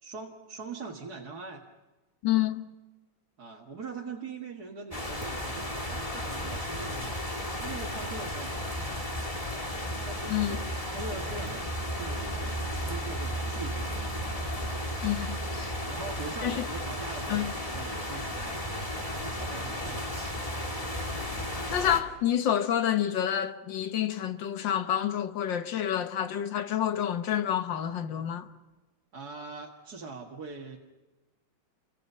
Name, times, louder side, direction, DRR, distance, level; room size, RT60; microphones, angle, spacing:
voice 1, 0.0-1.6 3.4-9.1 10.0-14.1 14.6-14.8 15.8-20.4 29.1-30.8, right 4 dB, 55° right, 2.3 m, -42 dB
voice 2, 2.2-2.6 10.3-10.6 15.0-15.7 16.4-16.7 17.3-17.5 21.7-28.5, left 10 dB, 75° left, 1.8 m, -28 dB
sound 1, 4.9-22.0, equal, 20° left, 2.2 m, -34 dB
29.5 x 24.5 x 5.6 m
omnidirectional pair, 2.1 m